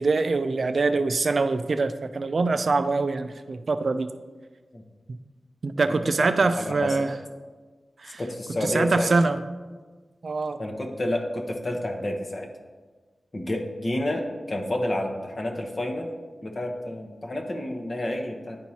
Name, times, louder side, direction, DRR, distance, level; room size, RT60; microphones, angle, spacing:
voice 1, 0.0-4.1 5.6-7.1 8.0-8.2 8.6-9.4 10.2-10.6, right 3 dB, 65° right, 10 dB, 0.3 m, -24 dB
voice 2, 6.2-7.1 8.2-9.1 10.6-12.5 13.3-16.1 16.4-18.6, left 1 dB, 45° left, 2 dB, 0.9 m, -30 dB
10.0 x 4.5 x 2.8 m, 1.4 s
wide cardioid pair, 85°, 0 cm